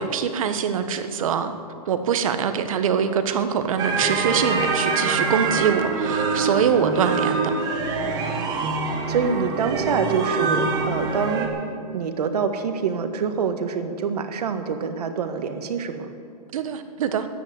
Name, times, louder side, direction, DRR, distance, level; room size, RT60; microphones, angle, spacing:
voice 1, 0.0-1.5 1.9-7.5 16.5-17.3, right 7 dB, 55° right, 9 dB, 1.3 m, -23 dB
sound 1, 3.8-11.5, right 4 dB, 20° right, 1.5 m, -25 dB
voice 2, 9.1-11.5 11.9-16.1, right 6 dB, 75° right, 7 dB, 1.7 m, -26 dB
13.5 x 10.5 x 8.2 m, 2.4 s
hypercardioid pair, 165°, 20 cm